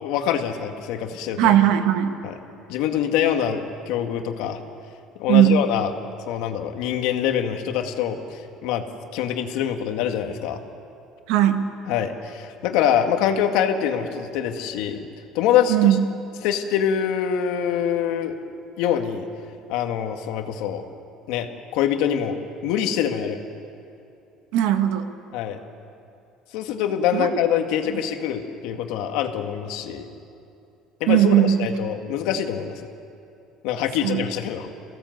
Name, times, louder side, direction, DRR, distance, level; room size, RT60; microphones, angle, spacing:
voice 1, 0.0-1.5 2.2-2.4 2.7-3.6 3.9-4.6 5.2-5.9 6.3-8.8 9.1-10.6 11.9-15.1 15.3-15.8 16.4-18.3 18.8-19.3 19.7-20.8 21.3-22.4 22.6-23.4 25.3-25.6 26.5-30.1 31.0-32.9 33.6-34.7, left 9 dB, 75° left, 5 dB, 2.0 m, -24 dB
voice 2, 1.4-2.1 5.3-5.6 11.3-11.7 15.7-16.0 24.5-25.1 27.1-27.3 31.1-31.7 34.0-34.2, right 11 dB, 75° right, 7 dB, 1.6 m, -18 dB
28.0 x 17.0 x 8.0 m, 2.7 s
cardioid pair, 165°, 0 cm